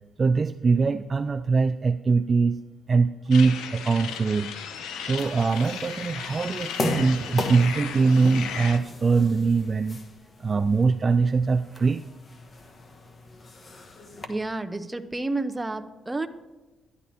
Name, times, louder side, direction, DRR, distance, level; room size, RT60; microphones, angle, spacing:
voice 1, 0.2-2.6 2.9-4.5 5.0-10.0 10.4-12.0, right 4 dB, 35° right, 9 dB, 0.4 m, -22 dB
sound 1, 3.3-8.8, left 7 dB, 85° left, 1.0 m, -36 dB
sound 2, 5.2-14.2, left 3 dB, 35° left, 1.3 m, -37 dB
voice 2, 14.3-16.3, right 2 dB, 15° right, 7 dB, 0.8 m, -30 dB
11.5 x 11.0 x 4.3 m, 1.1 s
cardioid pair, 90°, 0 cm